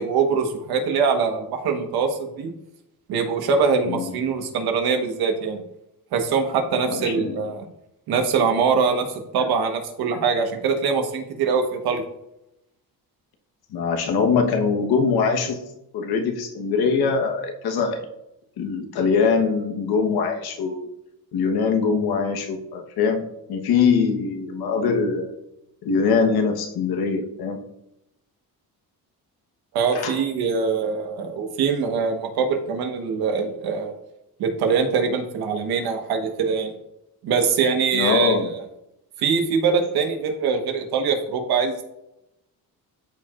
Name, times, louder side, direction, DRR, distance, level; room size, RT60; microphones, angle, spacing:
voice 1, 0.0-2.5 3.1-5.6 6.1-7.6 8.1-9.1 9.3-12.0 29.7-33.9 34.4-36.7 37.2-38.4 39.2-41.8, right 5 dB, 90° right, 5 dB, 1.3 m, -23 dB
voice 2, 6.9-7.5 13.7-15.6 15.9-18.0 18.6-20.9 21.3-25.3 25.8-27.6 29.9-30.2 37.9-38.5, left 5 dB, 80° left, 4 dB, 1.2 m, -22 dB
13.0 x 4.6 x 2.5 m, 0.86 s
cardioid pair, 105°, 37 cm